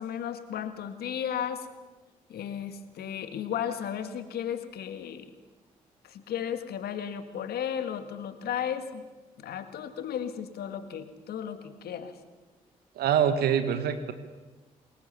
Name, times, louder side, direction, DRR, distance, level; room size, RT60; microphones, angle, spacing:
voice 1, 0.0-1.7 2.3-5.3 6.0-9.0 9.4-12.2, left 9 dB, 70° left, 9 dB, 1.9 m, -34 dB
voice 2, 13.0-14.1, right 8 dB, 75° right, 10 dB, 1.5 m, -25 dB
25.0 x 21.0 x 7.1 m, 1.2 s
hypercardioid pair, 40°, 17 cm